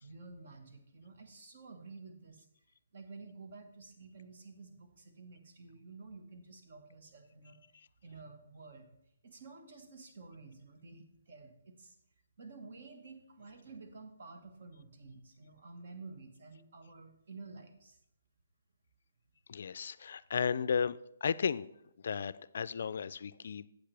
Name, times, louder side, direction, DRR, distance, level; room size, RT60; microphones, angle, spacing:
voice 1, 0.0-2.5 2.9-7.6 8.0-8.9 9.2-11.9 12.4-18.0, right 3 dB, 60° right, 5 dB, 1.5 m, -51 dB
voice 2, 19.5-21.7 22.0-23.7, left 6 dB, 60° left, 16 dB, 0.3 m, -34 dB
8.6 x 8.0 x 3.4 m, 0.77 s
hypercardioid pair, 160°, 0 cm